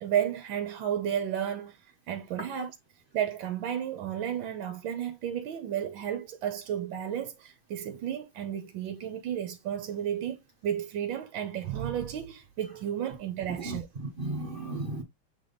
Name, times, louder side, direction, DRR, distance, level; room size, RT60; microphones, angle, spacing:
voice 1, 0.0-1.8 2.1-2.7 3.1-13.9, right 9 dB, 75° right, 1.5 m, -32 dB
voice 2, 13.6-15.0, right 2 dB, 40° right, 0.8 m, -35 dB
7.5 x 3.4 x 3.9 m
omnidirectional pair, 2.3 m